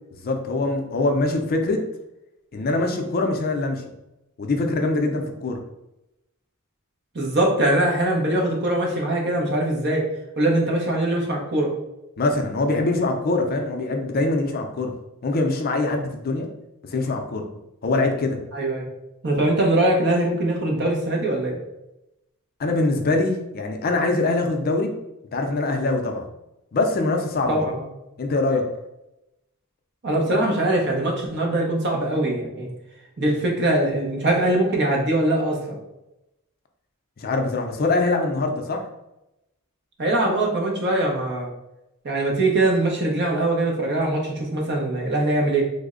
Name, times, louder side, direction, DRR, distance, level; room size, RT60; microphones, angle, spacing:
voice 1, 0.1-1.8 2.5-3.8 4.4-5.6 12.2-14.9 15.2-16.5 16.9-17.4 17.8-18.4 22.6-24.9 25.3-26.2 26.7-27.7 28.2-28.6 37.2-38.8, left 2 dB, 45° left, 4 dB, 0.4 m, -23 dB
voice 2, 7.1-10.1 10.4-11.7 18.5-18.9 19.2-21.6 27.5-27.8 30.0-32.7 33.2-35.8 40.0-41.5 42.0-45.6, right 1 dB, 50° right, 0 dB, 0.8 m, -22 dB
3.3 x 2.1 x 3.6 m, 0.91 s
head